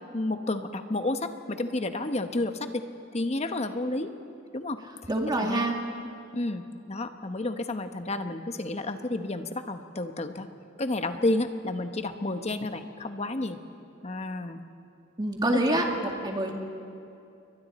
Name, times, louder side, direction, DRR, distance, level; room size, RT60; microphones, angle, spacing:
voice 1, 0.1-2.8 3.1-4.1 4.5-4.8 5.4-5.7 6.3-10.5 10.8-13.6 14.0-14.6 15.7-15.8, left 2 dB, 35° left, 8 dB, 1.0 m, -31 dB
voice 2, 5.1-5.8 15.2-16.5, right 1 dB, 20° right, 1 dB, 2.1 m, -26 dB
29.0 x 23.0 x 4.2 m, 2.6 s
head